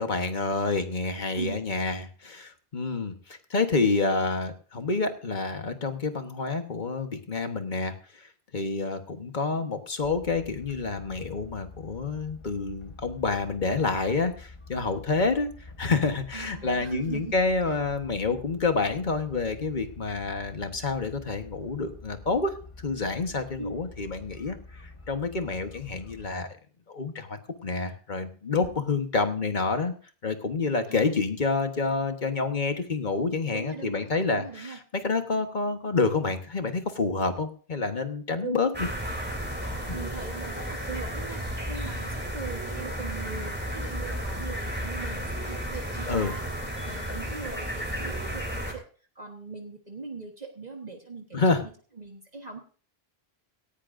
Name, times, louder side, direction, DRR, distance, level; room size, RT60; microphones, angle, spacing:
voice 1, 0.0-15.5 15.8-24.6 24.8-26.5 26.9-29.9 30.2-34.8 35.0-38.9 39.9-40.0 46.1-46.3 51.3-51.6, left 3 dB, 50° left, 7 dB, 1.5 m, -28 dB
voice 2, 1.3-1.6 16.3-17.3 17.7-17.8 23.6-23.8 30.9-31.2 33.5-34.8 38.4-38.5 39.9-46.4 46.8-48.8 49.1-51.7 52.0-52.6, right 4 dB, 40° right, 2 dB, 1.6 m, -40 dB
sound 1, 10.0-26.3, left 3 dB, 30° left, 1.3 m, -47 dB
sound 2, 38.7-48.7, equal, 10° right, 3.2 m, -33 dB
17.5 x 15.5 x 2.6 m, 0.41 s
omnidirectional pair, 1.0 m